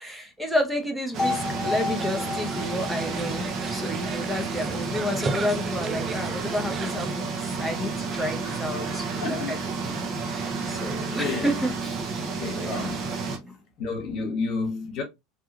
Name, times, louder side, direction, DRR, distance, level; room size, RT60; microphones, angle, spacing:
voice 1, 0.0-9.6 9.9-12.1 12.6-12.9 13.4-13.5, left 1 dB, 5° right, 0.7 m, -31 dB
sound 1, 1.1-13.4, right 4 dB, 45° right, 0.9 m, -31 dB
sound 2, 1.2-5.2, left 4 dB, 25° left, 1.1 m, -33 dB
sound 3, 2.0-7.1, right 5 dB, 30° right, 0.3 m, -36 dB
voice 2, 9.2-9.7 10.8-11.6 12.3-13.0 13.8-15.0, left 4 dB, 55° left, 1.1 m, -31 dB
2.7 x 2.2 x 2.8 m
hypercardioid pair, 90°, 0 cm